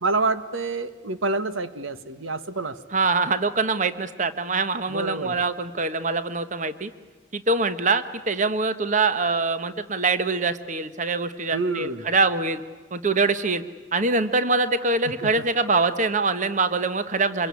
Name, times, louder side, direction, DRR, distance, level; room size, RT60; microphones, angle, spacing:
voice 1, 0.0-2.8 4.9-5.4 11.5-12.0 15.2-15.3, right 3 dB, 85° right, 11 dB, 1.4 m, -27 dB
voice 2, 2.9-6.9 7.3-12.6 12.9-13.6 13.9-17.5, right 3 dB, 40° right, 11 dB, 1.1 m, -24 dB
26.5 x 23.0 x 9.7 m, 1.3 s
head